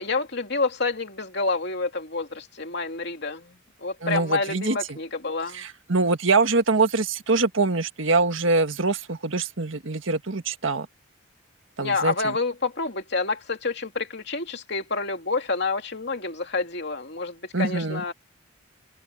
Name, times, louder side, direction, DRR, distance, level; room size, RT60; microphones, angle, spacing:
voice 1, 0.0-5.6 11.8-18.1, left 3 dB, 55° left, 3.1 m, -28 dB
voice 2, 4.0-5.0 5.5-10.9 11.8-12.4 17.5-18.0, right 3 dB, 70° right, 1.7 m, -24 dB
head